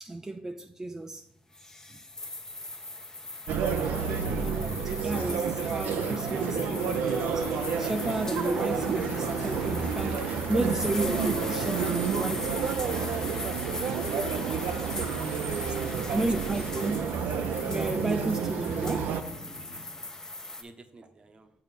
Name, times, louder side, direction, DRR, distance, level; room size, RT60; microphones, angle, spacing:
voice 1, 0.0-1.2 1.9-2.0 4.4-12.7 16.1-17.2 17.6-19.2, right 2 dB, 15° right, 0.5 m, -33 dB
sound 1, 1.5-20.6, left 2 dB, 20° left, 0.9 m, -39 dB
sound 2, 3.5-19.2, right 7 dB, 80° right, 0.6 m, -30 dB
sound 3, 3.8-6.0 6.3-20.3, left 2 dB, 50° left, 1.3 m, -43 dB
voice 2, 15.5-16.1 20.6-21.5, right 3 dB, 35° right, 1.0 m, -51 dB
7.2 x 4.6 x 5.2 m
cardioid pair, 80°, 3 cm